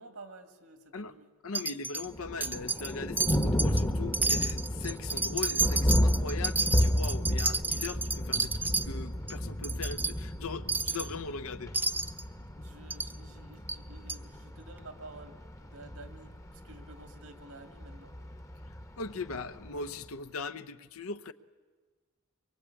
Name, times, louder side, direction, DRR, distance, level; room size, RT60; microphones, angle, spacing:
voice 1, 0.0-1.3 12.6-18.2, right 2 dB, 80° right, 2.2 m, -51 dB
voice 2, 1.4-11.7 19.0-21.3, left 4 dB, 75° left, 0.9 m, -40 dB
Wind chime, 1.5-2.1 2.4-2.9 3.2-3.8 4.1-8.9 9.3-9.4 9.6-10.1 10.7-11.1 11.7-12.2 12.9-13.1 13.7-13.8 14.1-14.2, right 3 dB, 10° right, 0.7 m, -30 dB
Thunder, 2.1-20.0, equal, 15° left, 0.9 m, -32 dB
24.0 x 22.5 x 8.5 m
head